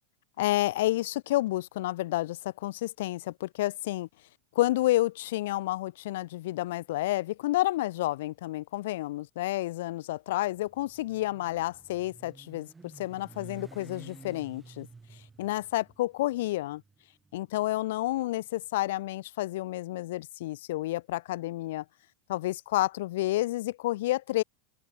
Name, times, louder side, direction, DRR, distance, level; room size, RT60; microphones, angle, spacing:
voice 1, 0.4-4.1 4.5-12.7 13.0-14.9 15.4-16.8 17.3-21.8 22.3-24.4, left 16 dB, 60° left, 0.9 m, -30 dB
Motorcycle, 10.3-18.5, right 4 dB, 15° right, 6.5 m, -52 dB
open air
figure-of-eight pair, 85°, 0 cm